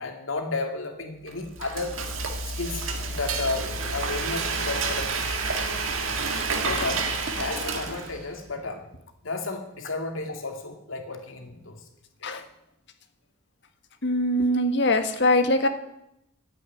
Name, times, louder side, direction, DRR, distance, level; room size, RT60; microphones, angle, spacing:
voice 1, 0.0-1.9 2.4-5.4 6.6-8.9 9.2-11.8 14.5-14.9, left 3 dB, 80° left, 4 dB, 2.5 m, -33 dB
Frying (food), 1.3-8.3, right 4 dB, 80° right, 1.9 m, -29 dB
voice 2, 14.0-15.7, left 1 dB, 60° left, 7 dB, 1.6 m, -22 dB
13.0 x 9.2 x 9.9 m, 0.83 s
head